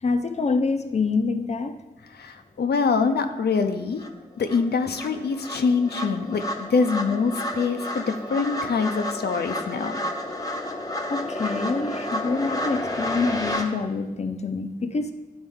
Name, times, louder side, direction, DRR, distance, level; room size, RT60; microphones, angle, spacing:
voice 1, 0.0-1.8 11.1-15.1, left 4 dB, 45° left, 7 dB, 0.5 m, -26 dB
voice 2, 2.1-4.0 4.4-9.9, left 5 dB, 85° left, 6 dB, 0.5 m, -24 dB
sound 1, 3.5-3.6 4.0-13.6, left 1 dB, 20° left, 0.8 m, -31 dB
10.5 x 4.3 x 3.6 m, 1.1 s
wide cardioid pair, 70°, 16 cm